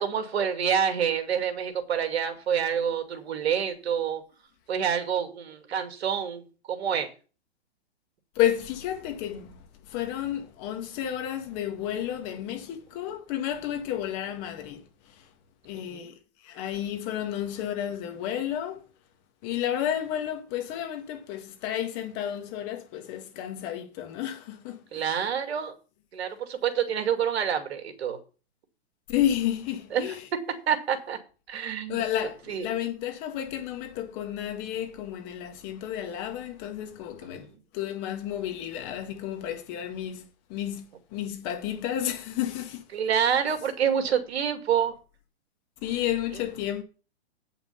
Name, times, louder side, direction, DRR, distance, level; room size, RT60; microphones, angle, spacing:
voice 1, 0.0-4.2 4.7-7.1 15.9-16.1 24.9-25.7 26.1-28.2 29.9-30.2 30.7-31.2 31.5-32.0 32.5-32.7 37.3-37.5 42.9-44.9, right 8 dB, 70° right, 2.4 m, -27 dB
voice 2, 8.4-9.6 9.9-15.2 15.6-16.1 16.4-18.8 19.4-25.2 29.1-30.2 31.9-37.5 37.7-42.8 43.2-43.3 45.8-46.8, left 11 dB, 30° left, 1.9 m, -31 dB
8.8 x 5.8 x 7.0 m
hypercardioid pair, 150°, 33 cm